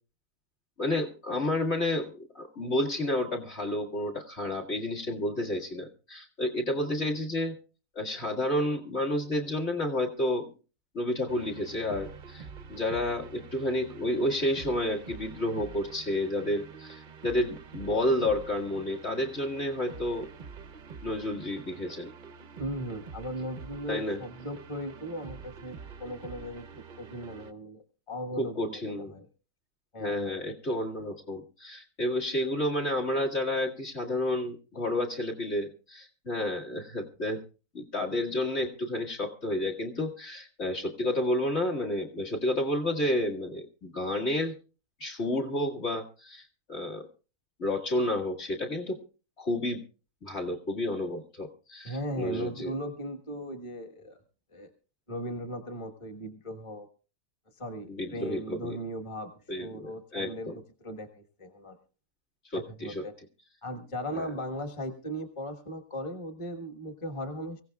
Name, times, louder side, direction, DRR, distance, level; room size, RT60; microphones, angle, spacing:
voice 1, 0.8-7.6 8.0-10.5 10.9-20.3 21.0-22.1 23.9-24.2 28.4-29.1 30.0-37.4 37.7-44.5 45.0-47.1 47.6-49.0 49.4-49.8 50.2-52.7 57.9-58.8 59.5-60.6 62.5-63.0 64.1-64.3, left 1 dB, 40° left, 0 dB, 2.2 m, -30 dB
sound 1, 11.3-27.5, right 6 dB, 50° right, 0.5 m, -46 dB
voice 2, 22.6-29.3 29.9-30.3 51.8-54.2 54.5-54.7 55.1-56.9 57.6-59.3 59.6-61.8 62.5-63.1 63.6-67.6, equal, 20° left, 2 dB, 1.3 m, -38 dB
24.5 x 16.0 x 2.3 m, 0.35 s
omnidirectional pair, 1.8 m